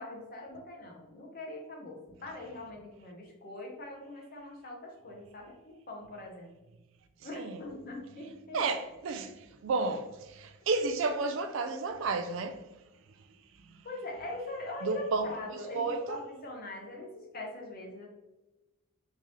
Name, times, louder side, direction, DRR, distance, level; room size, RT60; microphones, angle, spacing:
voice 1, 0.0-6.5 7.2-8.6 13.8-18.1, left 2 dB, 40° left, 0.8 m, -42 dB
voice 2, 8.5-12.6 14.8-16.2, right 3 dB, 60° right, 0.3 m, -32 dB
3.6 x 2.7 x 3.0 m
head